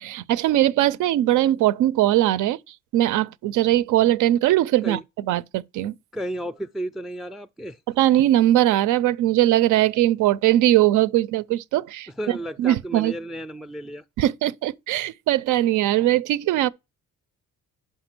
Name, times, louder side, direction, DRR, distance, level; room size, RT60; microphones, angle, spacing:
voice 1, 0.0-5.9 8.0-13.1 14.2-16.7, right 14 dB, 85° right, 0.5 m, -20 dB
voice 2, 6.1-7.8 12.2-14.0, right 1 dB, ahead, 0.3 m, -33 dB
5.7 x 5.2 x 5.9 m
cardioid pair, 90°, 30 cm